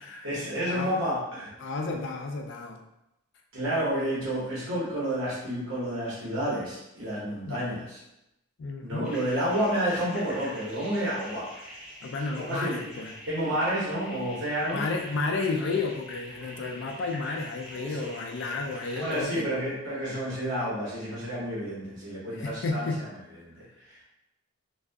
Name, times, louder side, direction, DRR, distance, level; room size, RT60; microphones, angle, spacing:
voice 1, 0.0-1.5 3.5-8.0 8.8-11.8 12.3-12.8 13.3-14.9 17.7-18.1 18.9-24.0, equal, 65° right, -7 dB, 1.0 m, -30 dB
voice 2, 1.6-2.8 7.5-7.6 8.6-9.1 12.0-13.1 14.7-19.5 22.4-23.0, left 3 dB, 60° left, 3 dB, 0.3 m, -32 dB
sound 1, 9.0-19.2, equal, 5° right, 0.5 m, -45 dB
2.6 x 2.3 x 2.2 m, 0.87 s
head